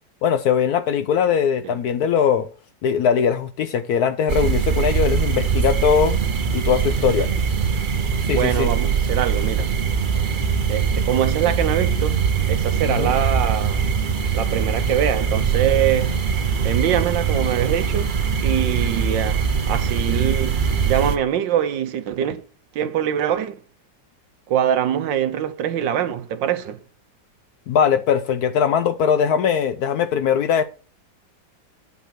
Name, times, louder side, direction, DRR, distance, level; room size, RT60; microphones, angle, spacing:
voice 1, 0.2-2.5 2.8-6.2 6.5-7.3 8.3-8.7 12.9-13.1 27.7-30.6, left 7 dB, 70° left, 1.0 m, -20 dB
sound 1, 4.3-21.2, right 6 dB, 45° right, 0.6 m, -22 dB
voice 2, 8.3-9.7 10.7-13.9 14.3-16.2 16.6-18.1 18.4-22.4 22.7-23.5 24.5-26.8, right 10 dB, 80° right, 1.6 m, -23 dB
9.4 x 5.8 x 5.8 m
omnidirectional pair, 2.0 m